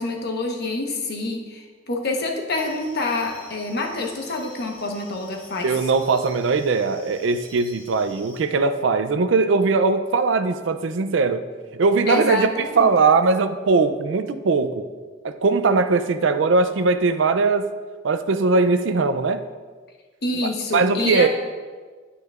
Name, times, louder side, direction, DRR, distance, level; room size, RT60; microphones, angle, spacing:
voice 1, 0.0-5.7 12.1-12.9 20.2-21.3, left 2 dB, 60° left, 2 dB, 1.1 m, -27 dB
sound 1, 2.5-8.4, equal, 10° left, 2.5 m, -48 dB
voice 2, 5.6-11.5 11.7-12.5 12.8-14.9 15.2-17.7 18.0-19.5 20.7-21.3, right 4 dB, 75° right, 10 dB, 0.4 m, -20 dB
9.7 x 9.2 x 2.4 m, 1.5 s
head